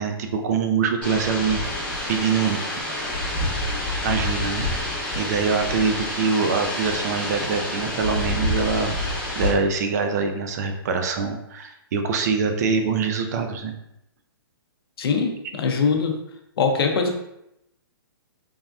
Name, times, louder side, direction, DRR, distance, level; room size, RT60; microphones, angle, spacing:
voice 1, 0.0-1.6 2.1-2.6 4.0-4.6 5.2-8.9 9.4-13.7, right 5 dB, 45° right, 6 dB, 0.3 m, -24 dB
sound 1, 1.0-9.5, left 1 dB, 10° left, 0.8 m, -27 dB
voice 2, 15.0-16.2 16.6-17.2, left 5 dB, 70° left, 4 dB, 0.6 m, -22 dB
3.3 x 2.5 x 2.3 m, 0.83 s
hypercardioid pair, 155°, 13 cm